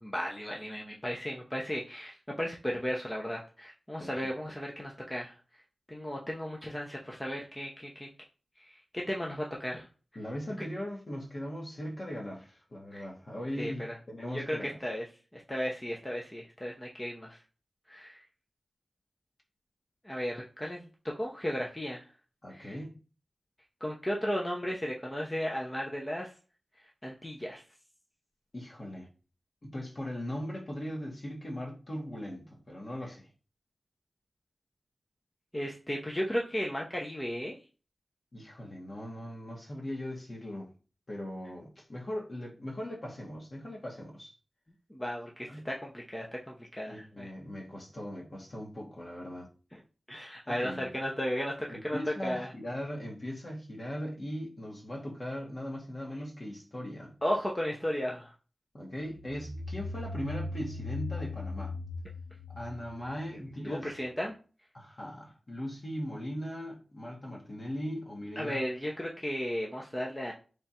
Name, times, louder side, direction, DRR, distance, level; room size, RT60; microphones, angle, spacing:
voice 1, 0.0-5.3 5.9-8.1 8.6-9.9 12.9-13.1 13.6-14.0 14.3-15.0 15.3-17.4 17.9-18.2 20.0-20.9 21.2-22.0 22.5-22.8 23.8-26.3 27.0-27.6 35.5-37.6 44.9-47.3 49.7-49.8 50.1-52.5 57.2-58.3 63.6-64.3 68.4-70.3, equal, 15° left, 0.7 m, -35 dB
voice 2, 10.1-14.8 22.4-23.0 28.5-29.1 29.6-33.3 38.3-40.7 41.1-44.3 45.4-45.6 46.9-49.5 50.5-50.9 51.7-57.1 58.7-61.7 62.5-63.9 64.7-68.6, equal, 45° left, 1.3 m, -39 dB
sound 1, 59.1-63.6, left 3 dB, 80° right, 0.6 m, -39 dB
3.3 x 2.5 x 4.2 m
wide cardioid pair, 80°, 0 cm